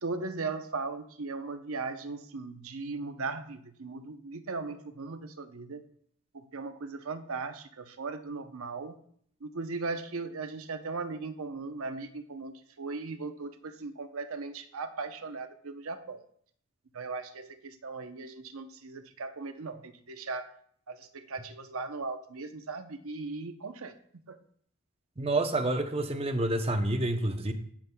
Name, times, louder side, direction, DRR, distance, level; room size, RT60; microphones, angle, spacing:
voice 1, 0.0-5.8 6.3-9.0 9.4-16.2 16.9-20.5 20.9-23.9 24.3-24.4, right 3 dB, 70° right, 8 dB, 0.7 m, -38 dB
voice 2, 25.2-27.5, right 2 dB, 25° right, 7 dB, 0.7 m, -28 dB
17.5 x 7.2 x 2.3 m, 0.63 s
head